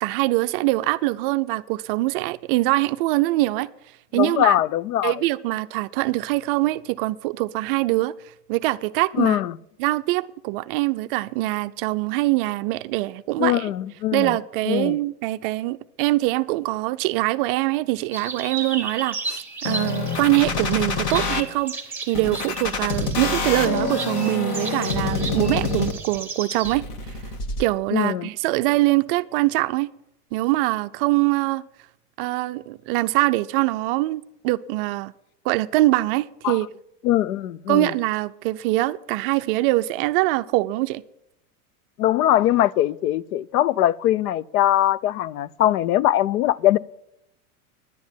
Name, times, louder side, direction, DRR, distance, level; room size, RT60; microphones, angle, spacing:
voice 1, 0.0-3.7 4.1-4.6 5.0-8.1 8.5-9.4 9.8-13.7 14.1-21.8 22.1-26.8 27.6-29.9 30.3-31.7 32.2-35.1 35.4-36.7 37.7-41.0, right 19 dB, 40° right, 0.4 m, -23 dB
voice 2, 4.1-5.2 9.2-9.6 13.4-14.4 14.7-15.0 27.9-28.3 36.4-36.6 37.0-37.9 42.0-46.8, left 13 dB, 80° left, 0.6 m, -21 dB
sound 1, 18.1-26.8, right 3 dB, 5° right, 1.7 m, -35 dB
sound 2, 19.6-21.4 22.1-26.2 26.6-27.6, left 4 dB, 45° left, 1.8 m, -26 dB
10.5 x 9.4 x 7.3 m
supercardioid pair, 140°, 44 cm